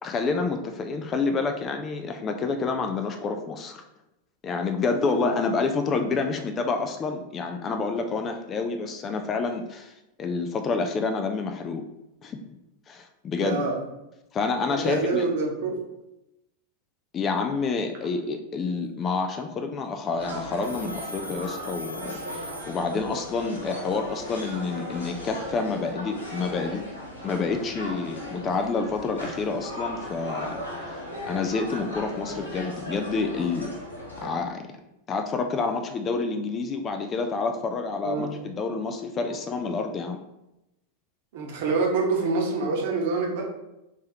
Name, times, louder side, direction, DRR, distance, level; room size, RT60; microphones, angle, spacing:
voice 1, 0.0-3.8 4.4-9.9 10.2-11.8 12.2-12.4 12.9-13.6 14.3-15.3 17.1-26.8 27.2-31.0 31.3-33.7 34.2-34.7 35.1-40.2, left 4 dB, 25° left, 5 dB, 0.4 m, -28 dB
voice 2, 13.4-13.8 14.8-15.7 38.0-38.3 41.3-43.4, right 4 dB, 50° right, -1 dB, 0.9 m, -26 dB
sound 1, 20.2-34.3, equal, 75° left, 1.2 m, -37 dB
Telephone, 20.6-23.3, right 1 dB, 85° right, 0.3 m, -40 dB
3.4 x 3.2 x 2.8 m, 0.90 s
figure-of-eight pair, 90°, 0 cm